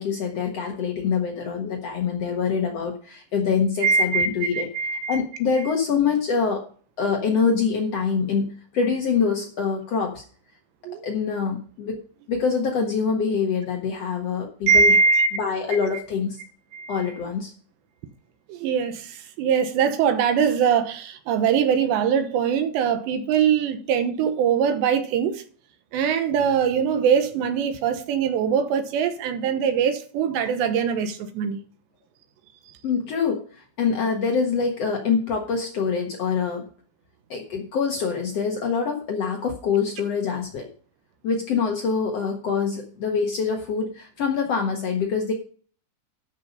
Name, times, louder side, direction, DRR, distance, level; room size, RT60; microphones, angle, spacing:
voice 1, 0.0-4.7 5.1-6.6 7.0-10.2 11.0-12.0 12.3-14.9 15.3-16.4 16.9-17.5 32.8-36.6 37.3-40.7 41.2-45.3, left 5 dB, 80° left, 1.4 m, -25 dB
voice 2, 3.8-4.3 4.5-5.2 5.6-5.7 10.8-11.0 14.7-15.3 16.7-17.1 18.5-25.4 25.9-31.6, right 6 dB, 80° right, 3.1 m, -22 dB
13.5 x 5.7 x 5.4 m
omnidirectional pair, 5.3 m